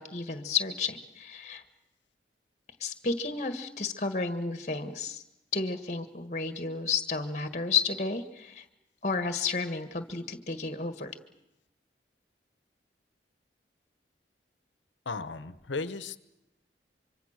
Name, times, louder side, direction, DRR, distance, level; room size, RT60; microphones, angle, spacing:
voice 1, 0.0-1.6 2.8-5.2 5.5-8.7 9.0-11.1, left 4 dB, 40° left, 10 dB, 1.6 m, -32 dB
voice 2, 15.0-16.2, left 3 dB, 90° left, 14 dB, 1.1 m, -35 dB
25.0 x 24.5 x 6.6 m, 0.91 s
head